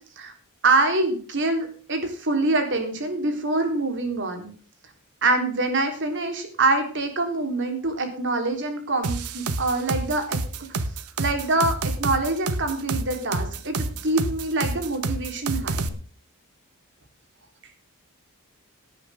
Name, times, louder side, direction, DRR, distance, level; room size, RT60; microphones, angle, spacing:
voice 1, 0.6-4.5 5.2-10.4 11.2-15.9, right 2 dB, 55° right, 5 dB, 3.8 m, -25 dB
sound 1, 9.0-15.9, right 3 dB, 90° right, 1.3 m, -28 dB
17.5 x 9.8 x 3.6 m, 0.41 s
head